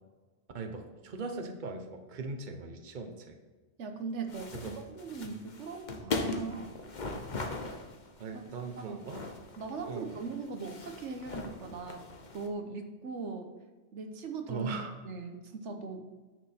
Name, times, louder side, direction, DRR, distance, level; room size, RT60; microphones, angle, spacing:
voice 1, 0.5-3.4 4.6-4.8 6.4-6.6 8.2-9.3 9.9-10.2 14.5-14.9, right 3 dB, 45° right, 5 dB, 1.1 m, -40 dB
voice 2, 3.8-6.7 8.3-8.4 8.8-9.0 9.6-12.0 12.3-13.5 13.9-14.7 15.0-16.1, right 4 dB, 80° right, 6 dB, 1.2 m, -39 dB
sound 1, 4.3-12.5, left 3 dB, 40° left, 1.1 m, -40 dB
10.0 x 6.6 x 4.3 m, 1.3 s
omnidirectional pair, 1.2 m